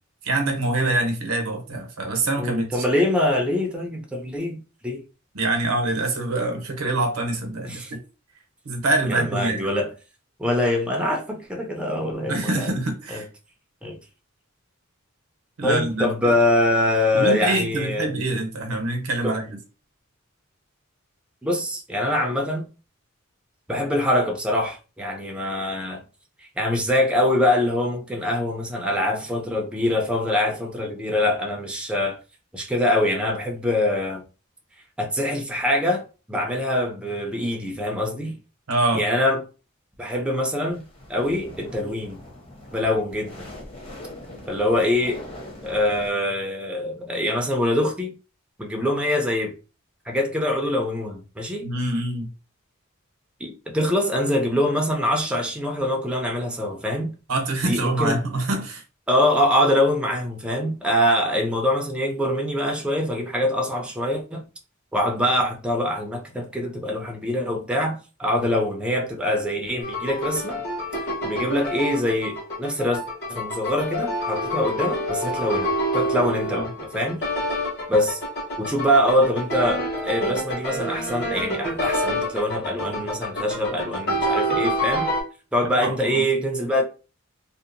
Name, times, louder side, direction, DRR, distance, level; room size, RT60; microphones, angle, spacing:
voice 1, 0.2-2.8 5.3-7.8 8.6-9.7 12.3-13.3 15.6-16.3 17.1-19.6 38.7-39.0 51.6-52.3 57.3-58.8 76.5-76.7 85.8-86.2, right 2 dB, 85° right, 0.7 m, -25 dB
voice 2, 2.4-4.6 4.8-5.0 7.6-7.9 9.1-9.9 10.4-12.7 13.1-13.2 13.8-14.0 15.6-18.1 19.2-19.4 21.4-22.7 23.7-26.0 26.6-32.2 32.5-34.2 35.0-38.4 38.9-39.4 40.0-40.8 41.1-42.2 42.7-43.5 44.5-45.2 45.6-48.1 48.6-49.5 50.1-51.7 53.4-57.1 57.6-58.2 59.1-64.4 64.9-70.6 71.2-73.0 73.3-77.2 77.9-78.2 78.6-85.1 85.5-86.8, left 1 dB, 5° right, 0.4 m, -24 dB
sound 1, 40.7-46.1, left 1 dB, 30° left, 0.8 m, -42 dB
sound 2, 69.8-85.2, equal, 50° left, 1.1 m, -27 dB
2.7 x 2.0 x 2.5 m
head